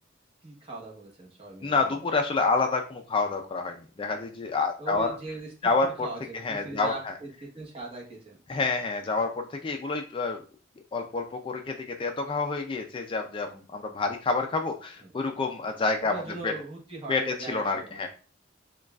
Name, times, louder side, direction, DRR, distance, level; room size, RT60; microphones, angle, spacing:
voice 1, 0.4-2.1 4.8-5.5 5.8-7.3 7.5-8.4 15.0-15.1 16.0-18.1, right 2 dB, 30° right, -2 dB, 1.0 m, -40 dB
voice 2, 1.6-5.1 5.6-6.1 6.4-7.1 8.5-10.4 10.9-16.1 16.4-16.5 17.1-18.1, left 3 dB, 25° left, 4 dB, 0.3 m, -28 dB
6.3 x 2.3 x 2.3 m, 0.38 s
head